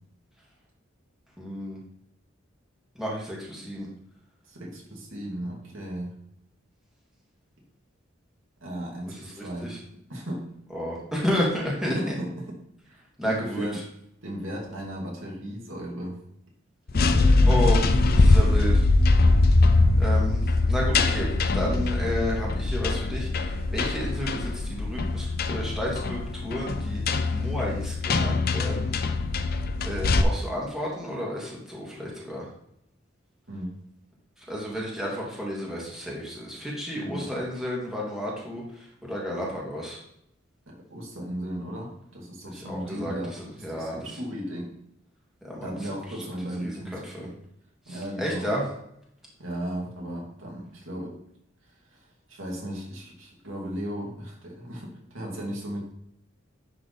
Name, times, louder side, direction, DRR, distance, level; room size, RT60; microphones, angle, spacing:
voice 1, 1.4-1.8 3.0-3.9 9.4-9.8 10.7-12.1 13.2-13.7 17.4-18.8 20.0-21.3 21.5-27.0 27.3-28.9 29.8-32.5 34.5-40.0 42.5-44.0 45.4-45.8 46.6-47.3 47.9-48.7, equal, ahead, -5 dB, 1.9 m, -32 dB
voice 2, 4.5-6.1 8.6-9.7 10.1-10.4 11.8-12.5 12.9-13.8 14.2-16.2 16.9-17.3 33.5-33.7 36.9-37.4 40.7-43.3 43.7-44.7 45.6-47.3 47.9-48.5 49.4-51.1 51.9-55.8, equal, 80° right, -3 dB, 2.4 m, -36 dB
sound 1, 16.9-30.2, left 2 dB, 50° left, 0.5 m, -22 dB
10.5 x 3.7 x 4.1 m, 0.74 s
head